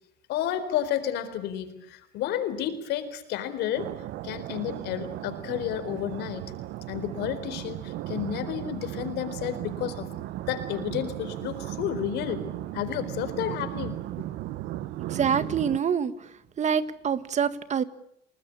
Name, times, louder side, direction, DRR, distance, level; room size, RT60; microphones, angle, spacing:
voice 1, 0.3-3.9 4.2-6.5 6.9-10.1 10.5-13.9, left 10 dB, 85° left, 12 dB, 4.3 m, -31 dB
sound 1, 3.7-15.8, right 15 dB, 80° right, 1.0 m, -36 dB
voice 2, 15.1-16.1 16.6-17.8, right 7 dB, 45° right, 13 dB, 1.8 m, -25 dB
29.5 x 19.5 x 8.6 m, 0.74 s
cardioid pair, 110°, 17 cm